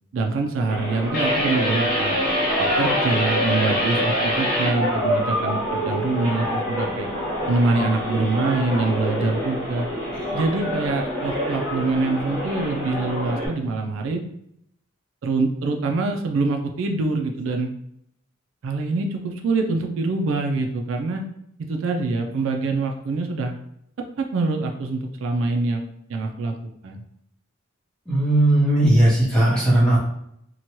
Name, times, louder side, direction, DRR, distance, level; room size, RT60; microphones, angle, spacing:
voice 1, 0.1-2.2 2.6-7.1 7.5-9.9 10.3-14.2 15.2-17.7 18.6-21.2 21.6-23.5 24.2-25.8 26.1-26.5 26.8-27.0, right 3 dB, 65° right, 3 dB, 0.3 m, -24 dB
sound 1, 0.7-13.5, equal, 15° right, 1.0 m, -28 dB
sound 2, 1.1-4.8, equal, 40° left, 0.6 m, -23 dB
voice 2, 28.1-30.0, right 1 dB, 5° left, -7 dB, 0.8 m, -17 dB
2.7 x 2.2 x 2.9 m, 0.74 s
head